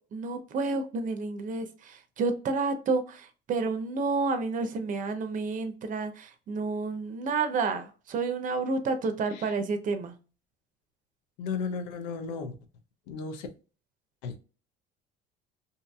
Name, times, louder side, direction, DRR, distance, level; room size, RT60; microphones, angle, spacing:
voice 1, 0.1-10.1, right 4 dB, 40° right, 0.6 m, -30 dB
voice 2, 11.4-12.6 13.1-13.5 14.2-14.4, left 5 dB, 85° left, 0.6 m, -34 dB
2.7 x 2.5 x 2.3 m
supercardioid pair, 90°, 20 cm